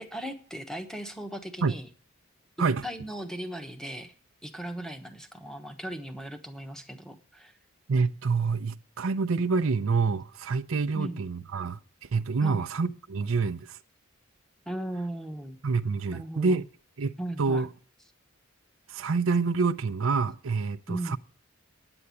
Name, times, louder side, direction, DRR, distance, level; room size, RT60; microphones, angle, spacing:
voice 1, 0.0-1.9 2.8-4.1 4.4-7.5 10.9-11.2 12.4-12.6 14.6-15.6 16.1-16.6 17.2-17.7 20.9-21.2, right 1 dB, 5° left, 1.1 m, -37 dB
voice 2, 7.9-13.8 15.6-16.6 17.0-17.7 18.9-21.2, right 4 dB, 70° right, 0.5 m, -27 dB
9.9 x 7.9 x 8.3 m
head